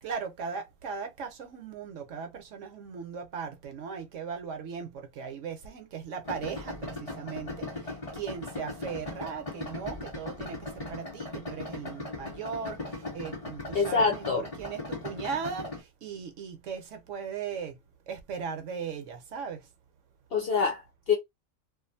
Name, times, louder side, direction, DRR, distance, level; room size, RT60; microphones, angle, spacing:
voice 1, 0.0-17.8 18.1-19.6, right 6 dB, 65° right, 0.9 m, -38 dB
Idling, 6.2-15.8, left 2 dB, 30° left, 0.9 m, -39 dB
voice 2, 13.7-14.4 20.3-21.2, left 5 dB, 60° left, 0.6 m, -26 dB
2.5 x 2.4 x 2.6 m
omnidirectional pair, 1.5 m